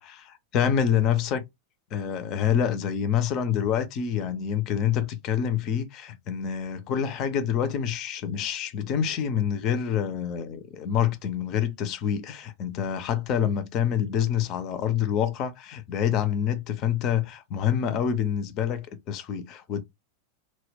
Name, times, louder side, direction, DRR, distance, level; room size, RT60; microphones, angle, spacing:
voice 1, 0.5-1.5 1.9-19.8, left 8 dB, 35° left, 0.4 m, -27 dB
2.1 x 2.1 x 3.3 m
figure-of-eight pair, 90°, 0 cm